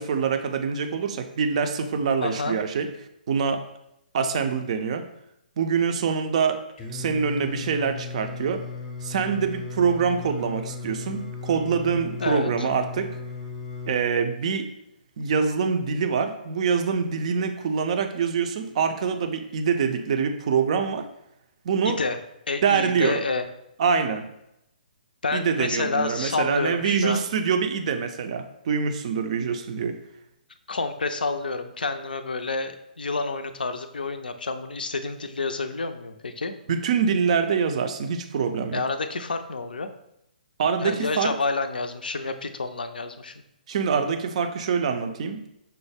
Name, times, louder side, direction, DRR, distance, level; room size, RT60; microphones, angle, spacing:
voice 1, 0.0-2.9 3.3-3.7 4.1-5.0 5.6-6.6 6.9-8.6 9.0-13.1 13.9-14.7 15.2-21.1 21.6-22.0 22.6-23.2 23.8-24.2 25.3-30.0 36.7-38.8 40.6-41.3 43.7-45.4, right 6 dB, 45° right, 7 dB, 0.4 m, -25 dB
voice 2, 2.2-2.6 12.2-12.7 21.9-22.2 22.5-23.5 25.2-27.2 30.7-36.5 38.7-39.9 40.8-43.3, left 3 dB, 70° left, 9 dB, 0.4 m, -29 dB
Singing, 6.8-14.0, left 4 dB, 20° left, 0.6 m, -36 dB
5.5 x 2.0 x 3.3 m, 0.82 s
figure-of-eight pair, 130°, 5 cm